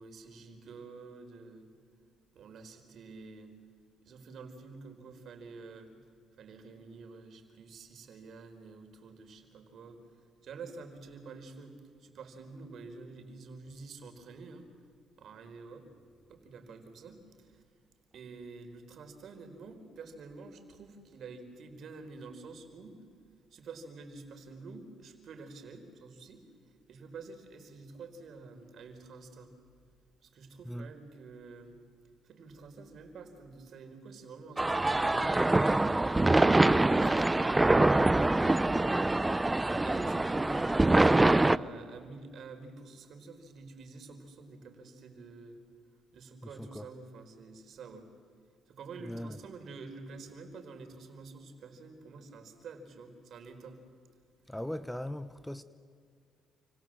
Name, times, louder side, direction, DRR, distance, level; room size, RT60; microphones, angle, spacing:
voice 1, 0.0-1.7 2.3-3.5 4.0-5.9 6.3-14.7 15.2-15.9 16.3-17.6 18.1-23.0 23.5-29.5 30.2-31.8 32.2-35.5 36.4-38.4 39.7-45.6 46.1-48.1 48.7-53.8, right 4 dB, 65° right, 4.4 m, -48 dB
sound 1, 34.6-41.6, right 2 dB, 15° right, 0.7 m, -24 dB
voice 2, 46.4-46.9 49.0-49.4 54.5-55.6, left 1 dB, 5° left, 1.1 m, -39 dB
29.0 x 26.0 x 7.7 m
cardioid pair, 75°, 0 cm